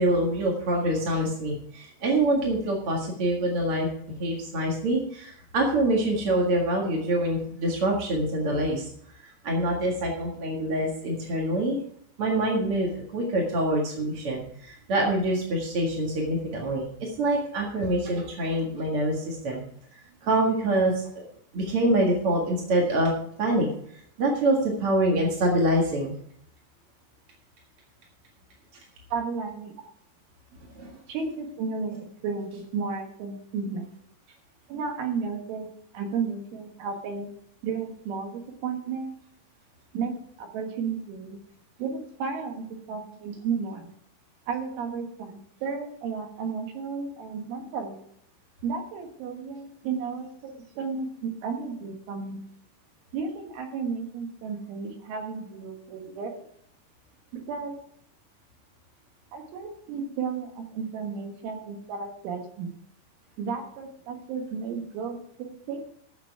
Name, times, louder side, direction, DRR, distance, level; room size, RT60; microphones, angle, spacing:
voice 1, 0.0-3.9 4.2-11.8 12.2-19.6 19.9-21.2 21.5-23.1 23.4-23.7 23.9-26.1 28.7-28.8 30.7-31.0, right 1 dB, 55° right, -1 dB, 1.6 m, -25 dB
voice 2, 29.1-29.7 31.1-33.9 34.7-35.7 35.9-37.3 37.6-39.2 39.9-41.4 41.8-43.9 44.5-48.0 48.6-52.5 53.1-56.4 57.3-57.8 59.3-62.7 63.4-65.8, right 5 dB, 85° right, 3 dB, 4.1 m, -33 dB
14.0 x 6.9 x 4.7 m, 0.66 s
omnidirectional pair, 5.5 m